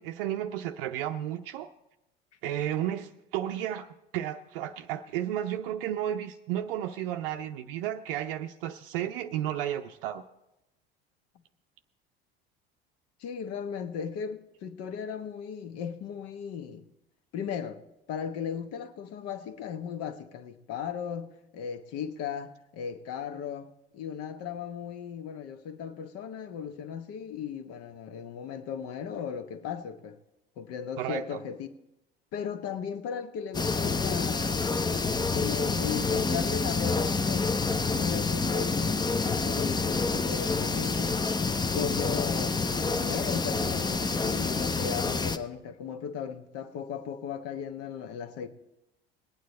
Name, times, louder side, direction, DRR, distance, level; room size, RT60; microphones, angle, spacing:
voice 1, 0.0-1.7 2.4-10.2 31.0-31.4 34.8-34.9, right 11 dB, 65° right, 0.6 m, -33 dB
voice 2, 13.2-16.9 17.3-17.8 18.1-30.2 30.6-31.7 32.3-34.8 35.3-41.2 41.7-42.6 42.9-48.5, left 7 dB, 50° left, 1.2 m, -36 dB
sound 1, 33.5-45.4, left 4 dB, 15° left, 0.7 m, -28 dB
19.0 x 9.3 x 4.1 m
figure-of-eight pair, 65°, 31 cm